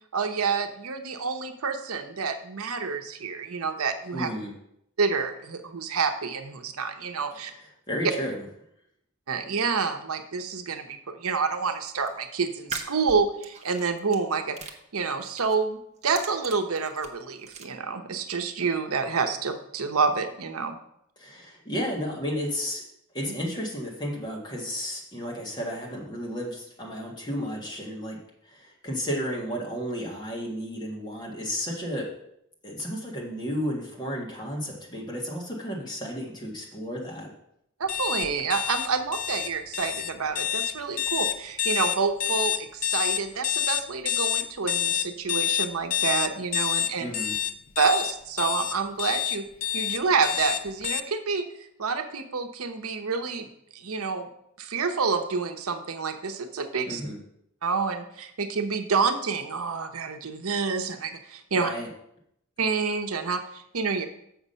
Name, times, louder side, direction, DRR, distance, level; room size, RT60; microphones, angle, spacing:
voice 1, 0.1-4.3 5.0-7.5 9.3-14.6 14.9-20.8 23.2-23.3 37.8-47.1 47.8-49.5 49.7-51.4 51.8-54.3 54.6-57.0 57.6-61.7 62.6-64.1, right 5 dB, 80° right, 6 dB, 0.8 m, -28 dB
voice 2, 4.1-4.5 7.9-8.4 21.2-22.8 23.1-28.2 28.4-32.0 32.6-37.3 47.0-47.3 56.8-57.2 61.5-61.9, equal, 20° left, -2 dB, 1.7 m, -32 dB
sound 1, 11.7-12.1 12.6-14.2 14.5-15.6 16.0-17.6, right 4 dB, 30° right, 0.8 m, -40 dB
sound 2, 37.9-51.0, left 10 dB, 35° left, 0.4 m, -28 dB
7.3 x 6.0 x 5.5 m, 0.75 s
head